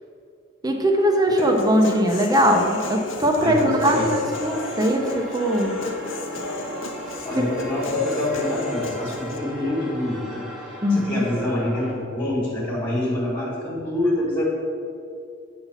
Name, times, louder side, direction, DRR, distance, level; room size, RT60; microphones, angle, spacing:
voice 1, 0.6-5.7 10.8-11.2, equal, 20° right, 2 dB, 1.0 m, -20 dB
Human voice, 1.4-9.4, left 3 dB, 80° left, 0.9 m, -32 dB
voice 2, 3.4-4.1 7.2-10.4 10.7-14.4, left 1 dB, 25° left, -7 dB, 1.8 m, -26 dB
sound 1, 3.9-11.9, equal, ahead, 1.4 m, -37 dB
8.5 x 4.2 x 7.2 m, 2.3 s
head